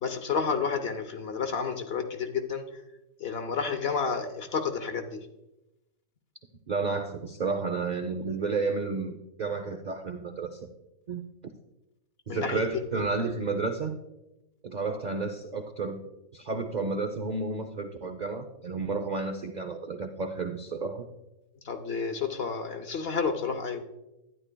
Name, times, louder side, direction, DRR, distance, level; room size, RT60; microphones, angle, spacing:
voice 1, 0.0-2.8 3.2-5.3 12.3-12.6 12.9-13.1 21.6-23.8, left 5 dB, 55° left, 7 dB, 0.8 m, -30 dB
voice 2, 6.7-10.7 11.1-11.2 12.3-14.0 14.6-16.0 16.3-21.0, right 4 dB, 80° right, 5 dB, 0.4 m, -31 dB
12.5 x 9.8 x 2.2 m, 0.94 s
omnidirectional pair, 1.5 m